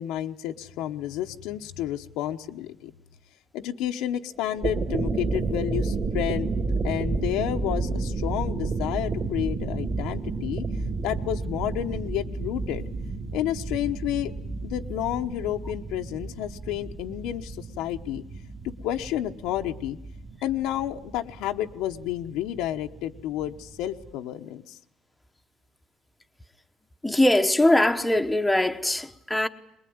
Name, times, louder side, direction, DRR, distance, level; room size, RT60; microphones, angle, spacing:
voice 1, 0.0-2.9 3.5-6.6 6.8-10.7 11.0-12.8 13.3-14.3 14.6-18.2 18.6-20.0 20.4-24.8, left 12 dB, 85° left, 1.0 m, -30 dB
sound 1, 4.4-24.1, right 3 dB, 30° right, 2.0 m, -32 dB
voice 2, 27.0-29.5, left 1 dB, 5° left, 0.9 m, -21 dB
23.0 x 21.0 x 9.5 m
cardioid pair, 160°, 0 cm